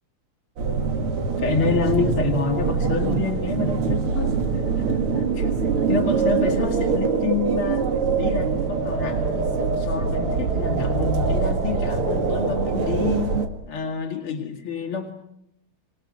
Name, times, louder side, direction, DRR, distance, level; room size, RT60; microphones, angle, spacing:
sound 1, 0.6-13.5, right 5 dB, 85° right, 3.0 m, -23 dB
voice 1, 1.4-5.5 5.9-7.9 8.1-9.2 9.5-13.4 13.7-15.1, left 5 dB, 85° left, 2 dB, 3.1 m, -28 dB
28.5 x 27.0 x 6.3 m, 0.79 s
omnidirectional pair, 2.3 m